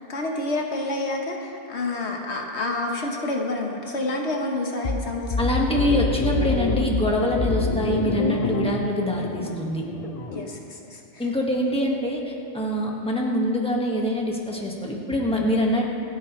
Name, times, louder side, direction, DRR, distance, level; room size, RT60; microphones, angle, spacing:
voice 1, 0.1-5.5 10.3-11.3, left 2 dB, 70° left, 1 dB, 1.5 m, -29 dB
sound 1, 4.8-10.5, left 3 dB, 35° left, 0.8 m, -26 dB
voice 2, 5.4-9.8 11.2-15.9, left 1 dB, 5° left, -2 dB, 1.6 m, -24 dB
27.0 x 9.2 x 3.2 m, 2.5 s
omnidirectional pair, 1.2 m